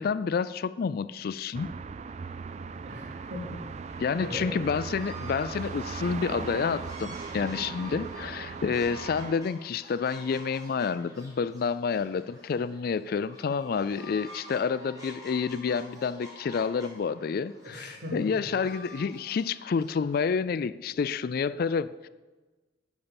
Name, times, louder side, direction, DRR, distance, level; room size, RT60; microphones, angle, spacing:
voice 1, 0.0-1.7 4.0-22.1, left 5 dB, 55° left, 15 dB, 0.3 m, -29 dB
sound 1, 1.5-9.3, right 5 dB, 35° right, 0.3 m, -39 dB
voice 2, 2.8-4.6 17.6-18.5, equal, 65° right, -2 dB, 3.2 m, -39 dB
sound 2, 4.6-20.2, equal, 20° right, 2.5 m, -48 dB
11.0 x 5.4 x 7.0 m, 1.2 s
head